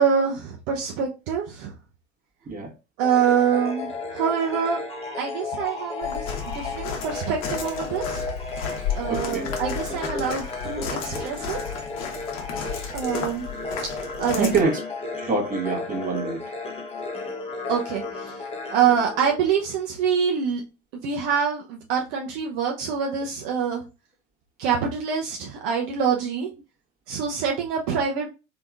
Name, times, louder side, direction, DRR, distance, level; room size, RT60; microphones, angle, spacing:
voice 1, 0.0-1.7 3.0-4.8 5.2-8.2 8.9-11.6 12.9-13.4 13.9-14.5 17.7-18.4 18.7-20.6 20.9-23.8 24.6-26.5 27.1-28.3, right 7 dB, 55° right, 0.8 m, -25 dB
sound 1, 3.0-19.8, left 3 dB, 15° left, 1.1 m, -34 dB
Walk footsteps, 6.0-14.6, left 6 dB, 50° left, 1.1 m, -33 dB
voice 2, 9.0-9.5 14.4-14.8 15.2-16.4, right 3 dB, 25° right, 1.3 m, -25 dB
3.4 x 3.0 x 2.4 m
figure-of-eight pair, 75°, 35 cm